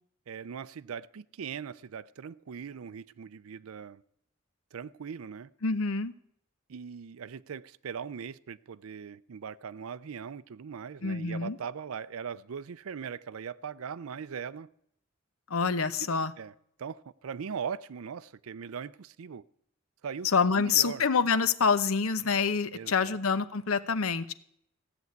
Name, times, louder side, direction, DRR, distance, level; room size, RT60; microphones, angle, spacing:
voice 1, 0.3-4.0 4.7-5.5 6.7-14.7 16.0-16.1 16.4-16.5 16.8-19.4 20.0-20.3 20.6-21.1 22.7-23.2, right 6 dB, 80° right, 0.5 m, -40 dB
voice 2, 5.6-6.1 11.0-11.6 15.5-16.3 20.2-24.3, left 5 dB, 80° left, 0.8 m, -26 dB
15.5 x 7.0 x 9.3 m
head